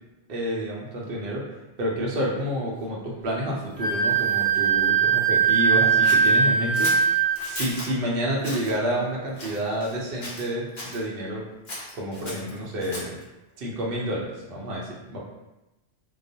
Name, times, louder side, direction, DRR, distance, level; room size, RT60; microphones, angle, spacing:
voice 1, 0.3-7.1 7.5-11.4 11.9-13.1 13.6-15.2, equal, 60° right, -3 dB, 0.8 m, -29 dB
Wind instrument woodwind instrument, 3.8-7.5, right 6 dB, 10° left, 0.5 m, -20 dB
Scissors, 6.0-7.9 8.4-8.7 9.3-10.0 10.2-11.0 11.6-13.2, left 1 dB, 50° left, 0.8 m, -36 dB
2.3 x 2.1 x 2.7 m, 1.0 s
omnidirectional pair, 1.2 m